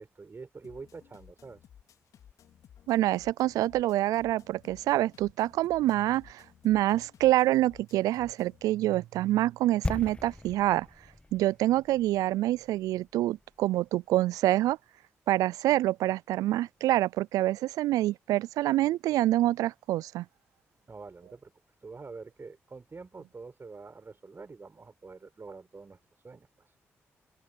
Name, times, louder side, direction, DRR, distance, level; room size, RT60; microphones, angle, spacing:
voice 1, 0.0-1.7 20.9-21.5 21.8-26.8, right 4 dB, 40° right, 4.5 m, -46 dB
sound 1, 0.6-8.6, left 9 dB, 70° left, 4.8 m, -57 dB
voice 2, 2.9-10.9 11.3-14.8 15.3-20.3, right 15 dB, 80° right, 0.3 m, -26 dB
sound 2, 9.8-13.8 14.0-14.2, left 2 dB, 20° left, 1.6 m, -39 dB
open air
hypercardioid pair, 40°, 6 cm